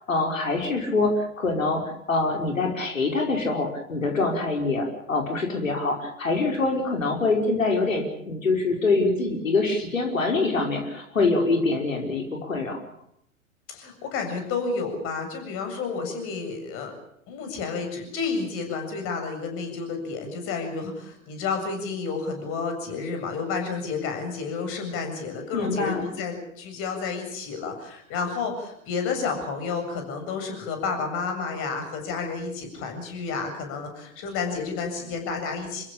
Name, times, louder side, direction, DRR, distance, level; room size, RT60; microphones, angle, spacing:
voice 1, 0.0-1.8 2.1-12.8 25.5-26.1, left 3 dB, 70° left, 2 dB, 5.5 m, -25 dB
voice 2, 13.7-16.9 17.3-35.8, left 4 dB, 30° left, 5 dB, 7.5 m, -31 dB
29.5 x 15.5 x 8.8 m, 0.73 s
figure-of-eight pair, 105°, 40 cm